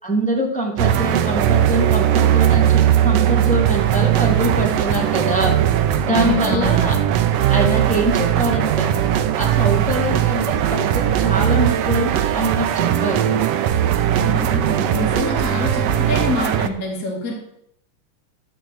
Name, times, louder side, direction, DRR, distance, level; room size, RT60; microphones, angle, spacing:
voice 1, 0.0-5.6 6.0-6.9 7.5-8.9 9.4-13.3, right 1 dB, 5° left, -2 dB, 1.7 m, -23 dB
sound 1, 0.8-16.7, right 10 dB, 75° right, 1.5 m, -19 dB
voice 2, 6.1-6.9 14.2-17.3, left 1 dB, 30° left, -1 dB, 2.2 m, -26 dB
13.0 x 4.9 x 7.6 m, 0.74 s
omnidirectional pair, 3.6 m